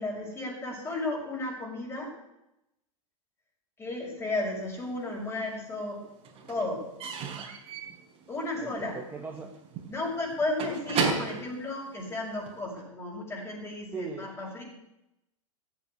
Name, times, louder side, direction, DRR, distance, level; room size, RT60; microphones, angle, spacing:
voice 1, 0.0-2.2 3.8-6.1 6.5-6.9 8.3-9.0 9.9-14.6, left 2 dB, 15° left, -1 dB, 6.6 m, -33 dB
Slam / Squeak / Wood, 4.7-5.6 5.8-12.6, right 4 dB, 35° right, 4.8 m, -35 dB
voice 2, 8.6-9.5 13.9-14.3, right 4 dB, 10° right, 2 dB, 1.7 m, -39 dB
15.0 x 9.1 x 9.6 m, 0.87 s
hypercardioid pair, 110°, 17 cm